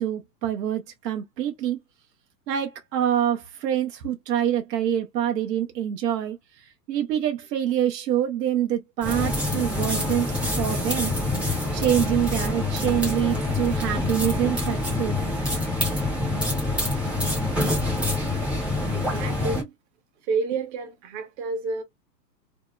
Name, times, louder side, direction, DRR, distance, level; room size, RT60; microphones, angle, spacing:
voice 1, 0.0-1.8 2.5-10.3 10.6-11.1 11.7-15.2, right 10 dB, 75° right, 0.7 m, -26 dB
sound 1, 9.0-19.6, left 2 dB, 5° right, 0.5 m, -26 dB
voice 2, 18.9-19.7 20.3-21.8, right 4 dB, 45° right, 0.9 m, -29 dB
2.7 x 2.0 x 2.2 m
hypercardioid pair, 125°, 50 cm